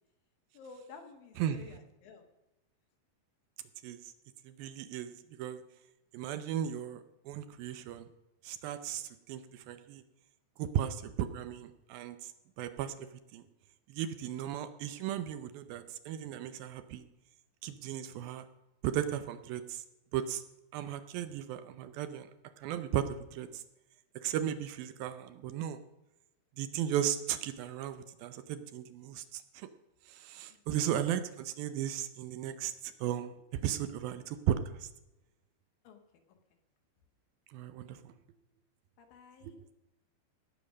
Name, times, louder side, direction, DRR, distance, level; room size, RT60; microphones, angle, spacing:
voice 1, 0.5-2.2 30.5-30.8 35.8-36.0 39.0-39.6, left 4 dB, 70° left, 4 dB, 3.1 m, -53 dB
voice 2, 4.5-5.6 6.1-8.1 8.4-10.0 10.6-12.3 12.6-13.1 13.3-13.4 13.9-17.0 17.6-18.5 18.8-19.8 20.1-20.4 20.7-22.3 22.6-23.6 24.2-25.8 26.6-29.7 30.1-34.9 37.5-38.1 39.4-39.5, right 10 dB, 80° right, 11 dB, 2.4 m, -36 dB
17.5 x 6.9 x 6.3 m, 0.97 s
omnidirectional pair, 4.5 m